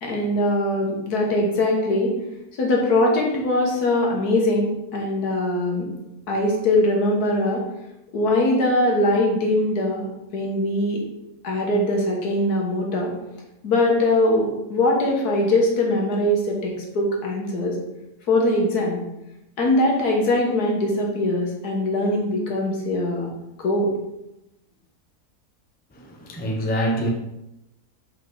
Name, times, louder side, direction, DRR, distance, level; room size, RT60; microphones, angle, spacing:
voice 1, 0.0-2.2 2.6-5.9 6.3-7.6 8.1-10.0 10.3-11.0 11.4-13.1 13.6-17.8 18.3-19.0 19.6-23.3 23.6-23.9, left 1 dB, 70° left, -1 dB, 1.8 m, -21 dB
voice 2, 26.0-27.1, equal, 10° left, 0 dB, 0.5 m, -25 dB
5.4 x 5.3 x 3.9 m, 0.90 s
omnidirectional pair, 1.7 m